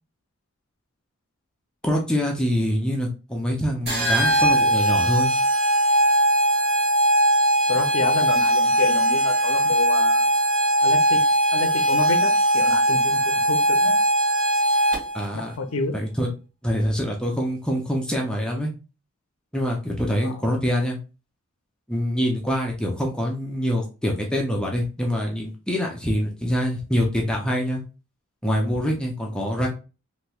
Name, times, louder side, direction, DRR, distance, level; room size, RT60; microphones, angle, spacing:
voice 1, 1.8-5.4 15.1-15.5 15.9-16.3 16.6-18.7 19.5-21.0 21.9-27.8 28.4-29.7, equal, 5° left, -1 dB, 0.4 m, -25 dB
sound 1, 3.9-15.2, right 1 dB, 45° right, 1.6 m, -20 dB
voice 2, 7.7-10.3 10.8-11.2 11.5-14.0 15.3-16.0 20.2-20.4, left 4 dB, 65° left, 8 dB, 0.5 m, -29 dB
3.1 x 3.0 x 2.2 m, 0.32 s
head